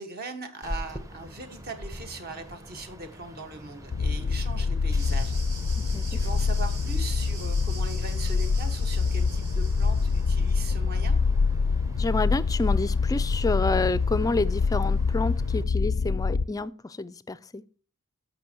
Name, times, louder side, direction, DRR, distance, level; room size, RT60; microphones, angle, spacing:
voice 1, 0.0-5.4 6.1-11.2, right 3 dB, 45° right, 1.3 m, -40 dB
sound 1, 0.6-15.6, equal, 15° right, 0.8 m, -42 dB
sound 2, 3.9-16.5, left 4 dB, 85° left, 0.4 m, -25 dB
sound 3, 5.0-10.5, right 4 dB, 80° right, 3.7 m, -44 dB
voice 2, 12.0-17.6, left 3 dB, 15° left, 0.3 m, -29 dB
14.0 x 5.3 x 2.9 m
head